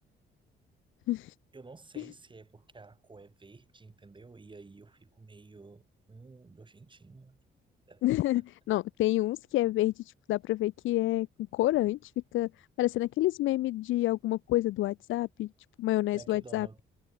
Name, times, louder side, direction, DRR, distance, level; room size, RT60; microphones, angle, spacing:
voice 1, 1.5-7.4 7.9-8.0 8.4-8.5 16.1-16.8, right 3 dB, 25° right, 6.2 m, -51 dB
voice 2, 8.0-11.3 11.5-15.5 15.8-16.7, left 16 dB, 85° left, 0.8 m, -28 dB
cardioid pair, 90°, 20 cm